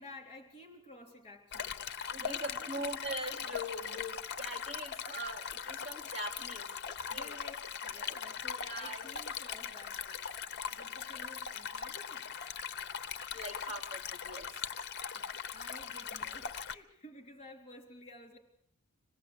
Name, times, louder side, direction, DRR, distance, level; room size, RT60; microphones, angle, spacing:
voice 1, 0.0-3.0 7.1-7.5 7.8-12.4 15.1-18.4, left 1 dB, 25° left, 4 dB, 3.7 m, -53 dB
Stream, 1.5-16.7, left 7 dB, 50° left, 0.8 m, -40 dB
voice 2, 2.1-7.4 8.0-8.2 8.4-9.1 13.3-14.7, equal, 30° right, 0 dB, 2.8 m, -42 dB
25.5 x 18.0 x 8.2 m, 0.76 s
head